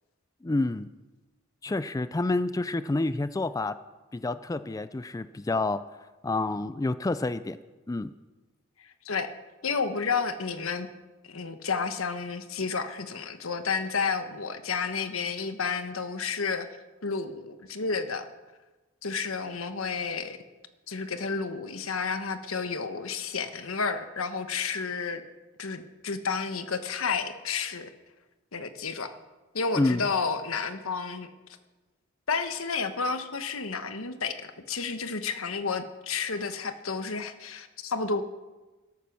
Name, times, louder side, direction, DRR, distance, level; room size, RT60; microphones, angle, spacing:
voice 1, 0.4-0.9 1.6-3.8 4.1-5.8 6.2-7.6 7.9-8.1 29.8-30.1, left 2 dB, 15° left, 13 dB, 0.4 m, -28 dB
voice 2, 8.8-9.3 9.6-10.9 11.2-16.7 17.0-18.3 19.0-20.4 20.9-25.2 25.6-27.9 28.5-29.1 29.5-31.3 32.3-38.2, left 5 dB, 85° left, 9 dB, 1.2 m, -31 dB
13.5 x 13.0 x 6.1 m, 1.2 s
head